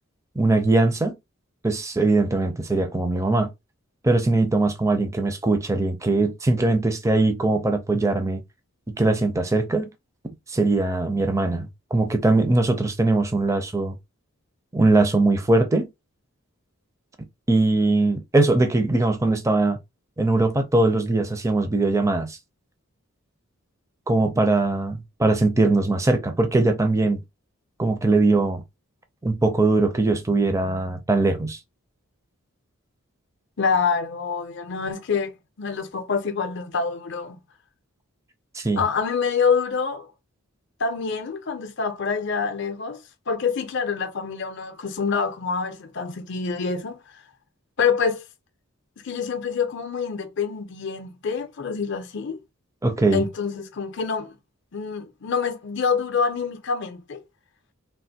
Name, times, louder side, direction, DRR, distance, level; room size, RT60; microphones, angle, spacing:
voice 1, 0.4-1.2 1.6-3.5 4.0-8.4 8.9-9.9 10.5-13.9 14.7-15.9 17.5-19.8 20.2-22.4 24.1-27.2 27.8-28.6 29.2-31.6 38.5-38.8 52.8-53.2, right 2 dB, 15° right, 0.4 m, -21 dB
voice 2, 33.6-37.4 38.8-40.1 40.8-43.0 43.3-47.0 47.8-48.2 49.0-52.4 53.1-54.3 54.7-57.2, left 5 dB, 55° left, 0.5 m, -26 dB
3.3 x 2.5 x 2.7 m
head